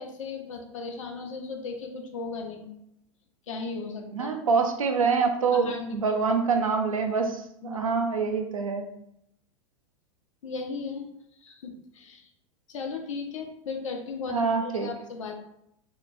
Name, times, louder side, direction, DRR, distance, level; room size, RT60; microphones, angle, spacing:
voice 1, 0.0-2.7 3.5-4.4 5.5-6.2 7.6-7.9 10.4-11.1 11.4-12.3 12.7-15.4, left 4 dB, 70° left, 3 dB, 0.6 m, -36 dB
voice 2, 4.1-8.9 14.3-14.9, right 5 dB, 85° right, 5 dB, 0.4 m, -25 dB
2.8 x 2.1 x 2.5 m, 0.77 s
figure-of-eight pair, 90°, 17 cm